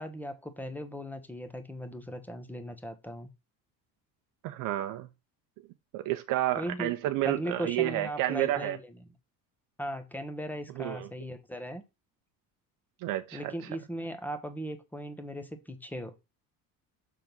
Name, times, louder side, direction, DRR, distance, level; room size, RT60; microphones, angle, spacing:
voice 1, 0.0-3.3 6.6-6.9 7.2-9.0 9.8-11.8 13.3-16.1, equal, 5° left, 1.0 m, -38 dB
voice 2, 4.4-5.1 5.9-8.8 10.8-11.1 13.0-13.5, right 14 dB, 70° right, 0.8 m, -30 dB
6.8 x 3.7 x 6.0 m
cardioid pair, 140°, 34 cm